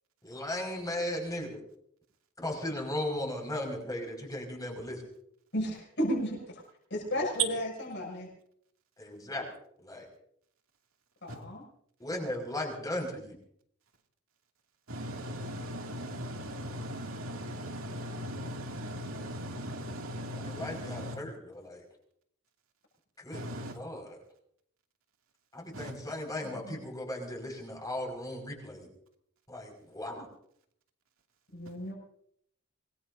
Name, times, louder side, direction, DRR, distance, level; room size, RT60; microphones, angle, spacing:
voice 1, 0.2-1.6 2.4-5.0 9.0-9.5 9.8-10.1 12.0-13.4 20.3-21.8 23.2-23.5 23.7-24.2 25.5-28.9 29.5-30.3, left 1 dB, 20° left, 1 dB, 5.5 m, -37 dB
voice 2, 5.5-6.6 6.9-8.3 11.2-11.6 26.6-26.8 31.5-31.9, equal, 60° left, -3 dB, 6.9 m, -33 dB
voice 3, 14.9-21.2 23.3-23.7 25.7-25.9, equal, 85° right, 2 dB, 2.5 m, -39 dB
25.5 x 20.5 x 2.7 m, 0.69 s
head